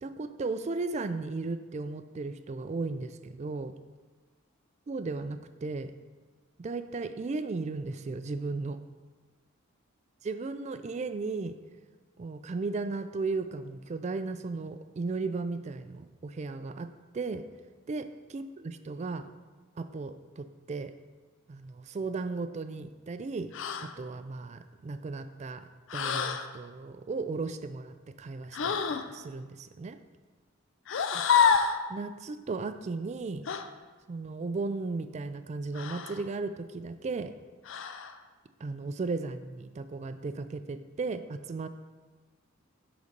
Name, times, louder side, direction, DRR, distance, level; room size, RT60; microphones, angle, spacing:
voice 1, 0.0-3.7 4.9-5.9 6.6-8.8 10.2-11.6 12.2-17.5 17.9-18.1 18.3-19.3 19.8-20.9 21.5-23.5 23.8-30.0 31.1-31.2 31.9-33.5 34.1-37.3 38.6-41.7, right 3 dB, 35° right, 11 dB, 0.3 m, -35 dB
sound 1, 23.5-23.9 25.9-26.5 28.5-29.1 30.9-31.8 33.5-33.7 35.7-36.2 37.6-38.1, left 6 dB, 60° left, 0.4 m, -27 dB
8.1 x 4.0 x 5.1 m, 1.3 s
head